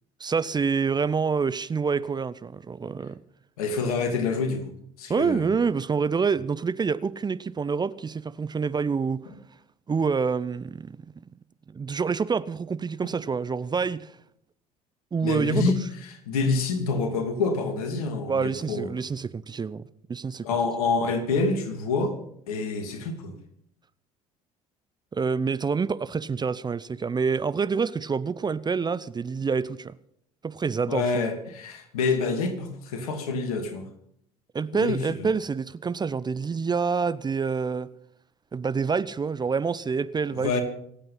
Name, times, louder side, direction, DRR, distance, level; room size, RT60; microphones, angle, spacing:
voice 1, 0.2-3.2 5.1-9.3 9.9-11.0 11.7-14.2 15.1-15.7 18.3-19.8 20.1-20.5 25.1-29.9 30.4-31.1 34.5-37.9 38.5-40.5, right 5 dB, 20° right, 0.7 m, -27 dB
voice 2, 3.6-5.6 15.2-15.8 16.3-18.9 20.4-22.2 22.5-23.3 30.9-33.9 34.7-35.3 40.4-40.6, left 4 dB, 75° left, 2.8 m, -27 dB
26.0 x 9.0 x 5.7 m
figure-of-eight pair, 65°, 19 cm